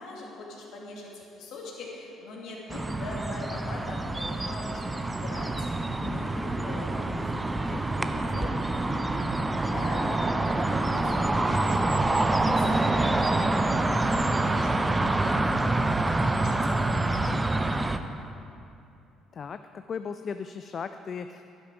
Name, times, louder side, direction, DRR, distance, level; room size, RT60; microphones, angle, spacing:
voice 1, 0.0-5.5 5.8-6.9 7.6-7.9 8.3-8.5 9.6-11.9 12.4-13.7 14.2-17.3, left 2 dB, 60° left, -2 dB, 2.4 m, -42 dB
sound 1, 2.7-18.0, right 2 dB, 20° right, 0.7 m, -26 dB
voice 2, 6.0-6.4 7.1-8.5 19.3-21.4, left 6 dB, 45° left, 10 dB, 0.4 m, -39 dB
11.5 x 10.5 x 5.1 m, 2.6 s
figure-of-eight pair, 50°, 0 cm